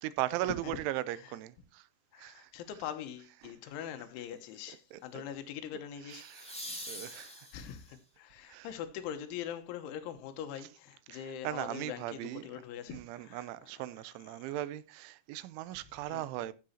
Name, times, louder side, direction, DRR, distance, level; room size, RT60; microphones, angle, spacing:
voice 1, 0.0-1.9 2.2-2.5 4.9-5.0 6.1-6.6 6.9-7.5 8.5-8.7 11.1-12.6 12.9-16.5, right 14 dB, 85° right, 3.1 m, -38 dB
voice 2, 2.1-6.3 7.0-13.5 14.3-14.4 15.7-16.2, left 9 dB, 85° left, 3.5 m, -43 dB
sound 1, 3.1-3.4 6.1-8.0 10.9-11.0, equal, 5° left, 0.9 m, -45 dB
15.5 x 7.6 x 2.8 m
omnidirectional pair, 5.4 m